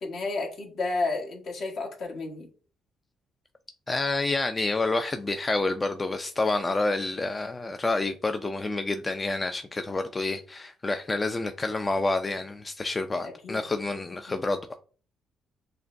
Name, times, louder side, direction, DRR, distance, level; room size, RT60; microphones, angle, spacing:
voice 1, 0.0-2.5 13.4-13.6 14.3-14.4, left 3 dB, 65° left, 1.4 m, -31 dB
voice 2, 3.9-14.6, left 2 dB, 25° left, 0.4 m, -28 dB
6.3 x 2.2 x 2.6 m
supercardioid pair, 70°, 0 cm